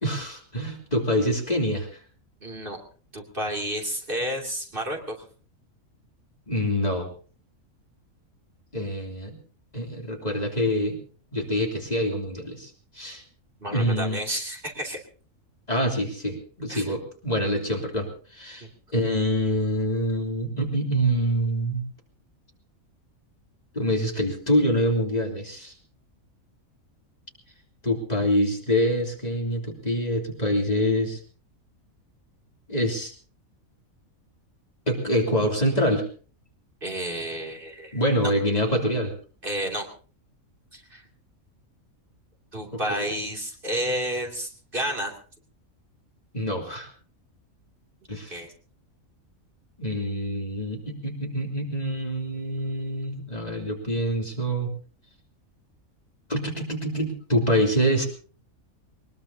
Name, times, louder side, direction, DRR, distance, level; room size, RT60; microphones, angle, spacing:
voice 1, 0.0-2.0 6.5-7.1 8.7-9.4 9.7-11.0 11.3-13.2 13.7-14.2 15.7-18.7 18.9-21.8 23.7-25.7 27.8-31.2 32.7-33.1 34.9-36.1 37.9-39.1 42.7-43.1 46.3-46.9 48.1-48.4 49.8-54.7 56.3-58.1, equal, 30° left, 0 dB, 3.2 m, -25 dB
voice 2, 2.4-2.8 3.1-5.2 13.6-15.0 16.7-16.8 18.6-18.7 36.8-38.0 39.4-39.9 40.7-41.0 42.5-45.1 48.3-48.5, equal, 40° right, 1 dB, 3.1 m, -31 dB
22.0 x 21.0 x 2.9 m, 0.40 s
omnidirectional pair, 1.4 m